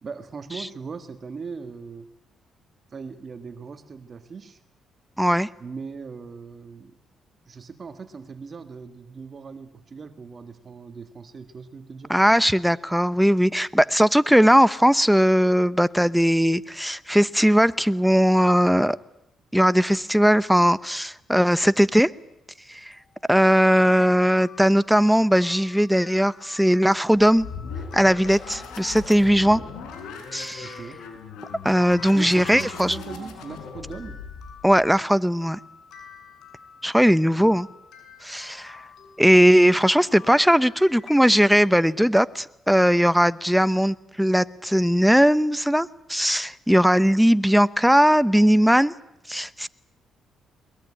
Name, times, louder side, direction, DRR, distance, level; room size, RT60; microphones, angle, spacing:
voice 1, 0.0-2.1 2.9-4.6 5.6-6.9 7.5-12.2 30.6-31.1 32.1-34.2 37.4-37.6, right 5 dB, 40° right, 9 dB, 1.7 m, -39 dB
voice 2, 5.2-5.5 12.1-19.0 19.5-22.1 22.7-22.9 23.3-27.5 27.9-29.6 30.3-30.8 31.6-33.0 34.6-35.6 36.8-37.7 38.2-38.8 39.2-48.9 49.3-49.7, equal, ahead, 16 dB, 0.9 m, -19 dB
sound 1, 22.9-41.8, left 6 dB, 75° left, 6.6 m, -49 dB
sound 2, 27.1-34.8, left 5 dB, 90° left, 5.4 m, -39 dB
22.0 x 21.0 x 9.9 m, 0.80 s
cardioid pair, 90°, 0 cm